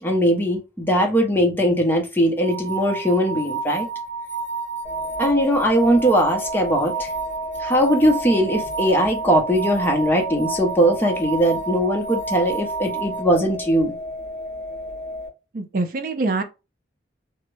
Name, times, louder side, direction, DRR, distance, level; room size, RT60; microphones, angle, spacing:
voice 1, 0.0-3.9 5.2-7.1 7.6-13.9, equal, 10° left, 0.6 m, -20 dB
sound 1, 2.4-13.2, right 4 dB, 60° left, 0.6 m, -30 dB
sound 2, 4.8-15.3, left 1 dB, 65° right, 1.6 m, -33 dB
voice 2, 15.5-16.4, right 3 dB, 50° right, 0.4 m, -24 dB
3.4 x 2.0 x 3.0 m
head